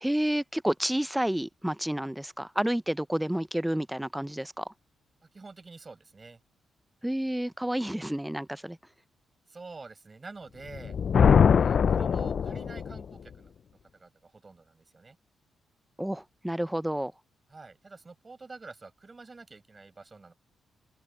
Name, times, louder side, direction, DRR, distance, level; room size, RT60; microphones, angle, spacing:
voice 1, 0.0-4.7 7.0-8.8 16.0-17.1, right 1 dB, 5° right, 0.6 m, -30 dB
voice 2, 5.3-6.4 9.5-11.0 11.6-15.2 17.5-20.3, right 3 dB, 25° right, 6.7 m, -48 dB
Thunder, 10.7-13.0, left 7 dB, 50° left, 0.3 m, -22 dB
open air
cardioid pair, 110°, 0 cm